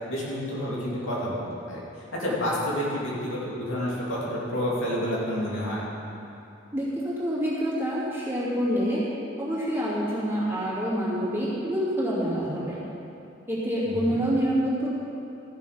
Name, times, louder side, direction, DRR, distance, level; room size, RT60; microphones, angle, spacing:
voice 1, 0.0-1.8 2.2-5.8 13.8-14.2, equal, 90° left, -6 dB, 2.8 m, -29 dB
voice 2, 6.7-9.0 9.4-12.8 13.5-14.9, equal, 10° right, -9 dB, 2.8 m, -27 dB
14.0 x 7.0 x 5.8 m, 2.8 s
head